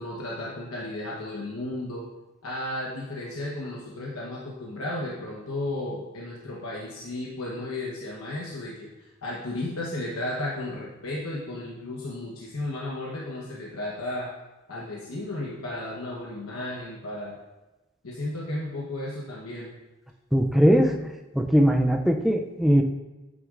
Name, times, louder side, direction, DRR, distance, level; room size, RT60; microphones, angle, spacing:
voice 1, 0.0-2.1 2.4-14.3 14.7-17.4 18.0-19.7, left 1 dB, 80° left, -4 dB, 1.0 m, -34 dB
voice 2, 20.3-21.1 21.4-22.8, equal, ahead, 2 dB, 0.3 m, -20 dB
9.2 x 6.2 x 2.5 m, 1.1 s
head